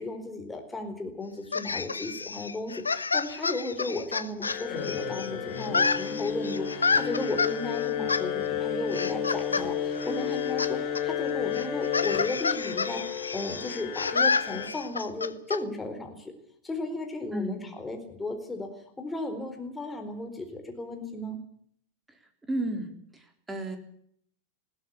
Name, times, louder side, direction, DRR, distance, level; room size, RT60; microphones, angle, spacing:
voice 1, 0.0-13.0 13.3-16.3 16.6-18.7 19.0-21.4, left 2 dB, 10° left, 4 dB, 4.2 m, -35 dB
sound 1, 1.5-5.3 5.6-7.5 8.1-8.2 8.9-9.7 9.9-10.7 11.0-11.1 11.5-15.6, left 4 dB, 75° left, 0.9 m, -29 dB
sound 2, 4.4-14.7, left 8 dB, 45° left, 6.1 m, -32 dB
voice 2, 17.3-17.6 22.1-22.2 22.5-23.8, right 1 dB, 10° right, 6 dB, 3.7 m, -33 dB
20.5 x 16.0 x 8.4 m, 0.65 s
figure-of-eight pair, 90°, 0 cm